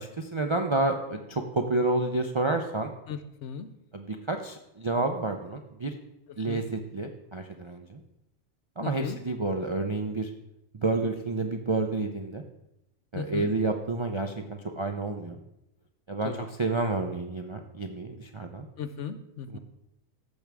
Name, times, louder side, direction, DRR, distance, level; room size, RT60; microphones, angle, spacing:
voice 1, 0.0-2.9 3.9-6.0 6.4-8.0 8.8-10.3 10.8-12.4 13.1-15.4 16.1-18.7 19.5-19.6, right 3 dB, 45° right, 4 dB, 0.4 m, -29 dB
voice 2, 3.1-3.7 6.3-6.6 8.8-9.2 13.1-13.5 16.2-16.5 18.8-19.6, left 7 dB, 70° left, 10 dB, 1.0 m, -36 dB
14.5 x 6.1 x 3.5 m, 0.86 s
omnidirectional pair, 1.3 m